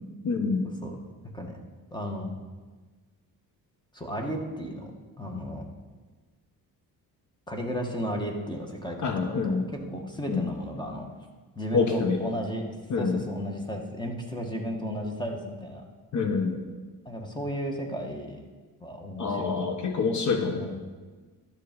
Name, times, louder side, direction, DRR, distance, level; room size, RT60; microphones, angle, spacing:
voice 1, 0.2-0.7 9.0-9.7 10.3-10.5 11.7-12.2 12.9-13.2 16.1-16.6 19.2-20.6, left 4 dB, 50° left, 5 dB, 1.0 m, -26 dB
voice 2, 1.9-2.3 3.9-4.9 5.2-5.7 7.5-11.1 11.6-12.6 13.0-15.8 17.0-18.4 18.8-19.7 20.5-20.8, equal, 10° left, 2 dB, 1.5 m, -34 dB
11.5 x 6.8 x 5.2 m, 1.4 s
cardioid pair, 110°, 37 cm